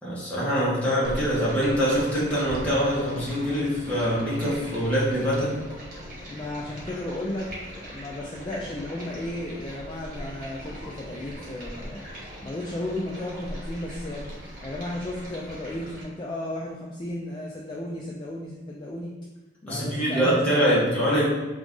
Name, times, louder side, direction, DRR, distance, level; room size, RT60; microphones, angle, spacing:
voice 1, 0.0-5.6 19.7-21.3, equal, 5° left, -8 dB, 1.1 m, -24 dB
Stream, 1.0-16.0, equal, 50° right, 1.4 m, -40 dB
voice 2, 6.3-12.1 12.4-14.3 14.6-19.1 19.6-20.9, left 1 dB, 25° left, -2 dB, 0.3 m, -34 dB
3.9 x 2.5 x 3.6 m, 1.2 s
head